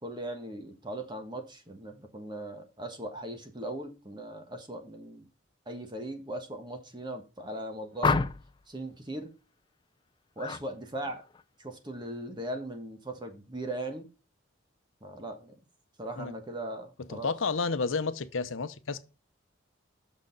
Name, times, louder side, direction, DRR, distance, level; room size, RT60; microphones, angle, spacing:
voice 1, 0.0-5.3 5.7-8.3 8.7-9.3 10.4-11.2 11.6-14.1 15.0-15.5 16.0-17.3, right 1 dB, 25° right, 1.3 m, -39 dB
sound 1, 8.0-8.6 10.4-10.7 11.0-11.4, left 4 dB, 25° left, 0.4 m, -29 dB
voice 2, 17.1-19.0, left 4 dB, 85° left, 0.7 m, -31 dB
6.4 x 6.3 x 3.8 m
head